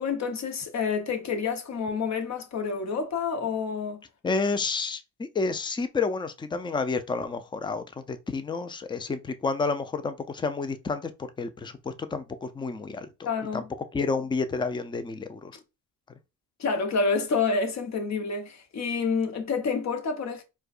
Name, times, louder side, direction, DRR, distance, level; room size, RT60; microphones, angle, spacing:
voice 1, 0.0-4.0 13.2-13.7 15.5-15.6 16.6-20.4, left 4 dB, 45° left, 1.0 m, -28 dB
voice 2, 4.2-13.3 13.5-13.6 13.9-15.5, left 4 dB, 15° left, 0.4 m, -30 dB
4.5 x 2.3 x 2.4 m
cardioid pair, 90°, 38 cm